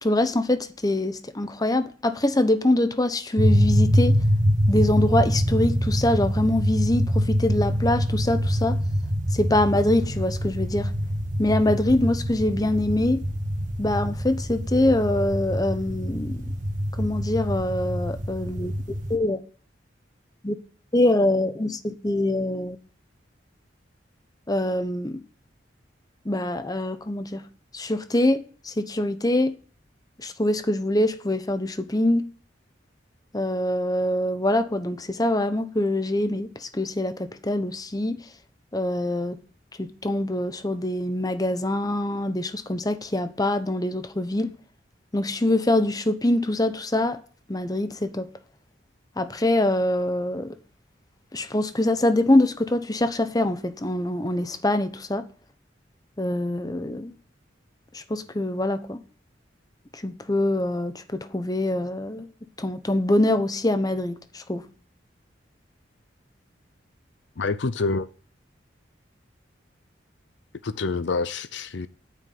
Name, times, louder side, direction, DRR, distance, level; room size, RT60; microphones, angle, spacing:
voice 1, 0.0-4.2 4.7-8.8 9.3-10.9 11.4-13.2 13.8-16.4 17.0-18.7 19.1-19.4 20.4-20.6 20.9-22.8 24.5-25.2 26.2-27.4 27.7-29.5 30.2-32.3 33.3-38.2 38.7-39.4 39.8-44.5 45.1-47.2 47.5-48.3 49.2-50.5 51.3-55.2 56.2-57.1 57.9-59.0 60.0-62.3 62.6-64.6, left 1 dB, 20° left, 1.0 m, -24 dB
sound 1, 3.4-19.2, equal, 45° right, 2.0 m, -25 dB
voice 2, 67.4-68.1 70.6-71.9, left 3 dB, 70° left, 0.6 m, -27 dB
9.5 x 8.6 x 9.4 m
head